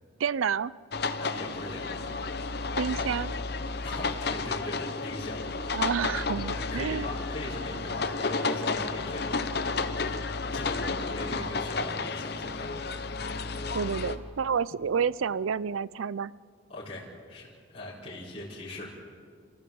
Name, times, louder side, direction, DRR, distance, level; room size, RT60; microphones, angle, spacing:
voice 1, 0.2-0.7 2.8-3.4 5.7-7.1 13.7-16.3, right 6 dB, 85° right, 20 dB, 0.4 m, -29 dB
sound 1, 0.9-14.2, left 4 dB, 50° left, 0.9 m, -32 dB
voice 2, 1.2-2.1 3.8-5.5 6.2-9.3 10.5-12.7 16.7-18.9, left 1 dB, 30° left, -7 dB, 4.4 m, -40 dB
sound 2, 4.4-4.9 6.4-6.9 8.3-8.8 10.8-11.3 12.3-12.8 14.2-14.6, equal, 15° right, 2.4 m, -56 dB
29.5 x 15.5 x 7.0 m, 2.2 s
head